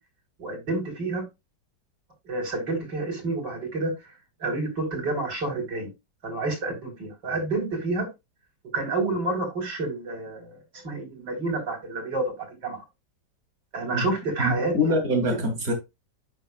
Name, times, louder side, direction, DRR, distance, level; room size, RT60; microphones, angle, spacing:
voice 1, 0.4-1.2 2.2-4.1 4.4-5.9 6.2-8.1 8.7-12.8 13.7-15.0, right 2 dB, 70° right, 4.5 m, -29 dB
voice 2, 14.4-15.7, left 1 dB, 50° right, 3.1 m, -24 dB
8.9 x 6.3 x 2.3 m
omnidirectional pair, 1.9 m